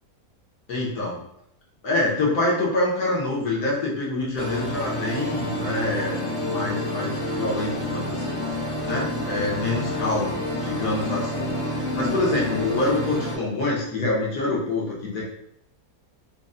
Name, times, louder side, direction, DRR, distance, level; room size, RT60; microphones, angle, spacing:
voice 1, 0.7-1.2 1.8-15.2, left 2 dB, 75° left, -4 dB, 1.5 m, -26 dB
sound 1, 4.4-13.4, left 1 dB, 55° left, 1.1 m, -29 dB
3.9 x 2.1 x 3.6 m, 0.74 s
omnidirectional pair, 1.7 m